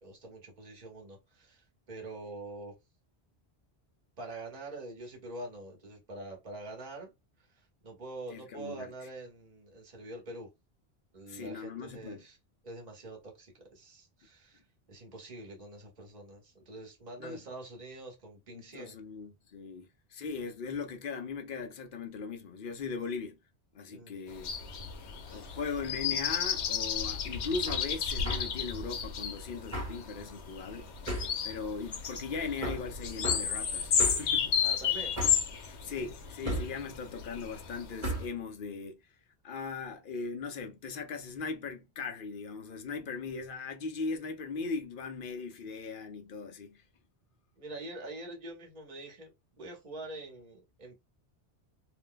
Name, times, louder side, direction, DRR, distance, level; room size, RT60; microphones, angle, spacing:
voice 1, 0.0-2.7 4.2-7.1 7.5-10.5 11.1-12.4 12.6-14.6 14.9-18.9 23.9-24.1 25.3-25.6 34.6-35.1 47.6-49.3 49.6-50.9, right 2 dB, 40° right, 1.1 m, -45 dB
voice 2, 8.3-8.9 11.3-12.3 17.2-17.4 18.5-23.4 23.7-24.5 25.3-30.9 31.4-34.8 35.8-39.0 39.4-46.8, left 4 dB, 60° left, 0.7 m, -39 dB
sound 1, 24.3-38.3, left 7 dB, 80° left, 1.0 m, -33 dB
Hammer, 27.7-27.9 28.2-28.5 29.7-30.0 31.1-31.4 32.6-32.9 33.2-33.5 34.0-34.3 35.2-35.5 36.4-36.8 38.0-38.3, right 1 dB, 15° right, 1.2 m, -34 dB
2.6 x 2.2 x 3.6 m
omnidirectional pair, 1.1 m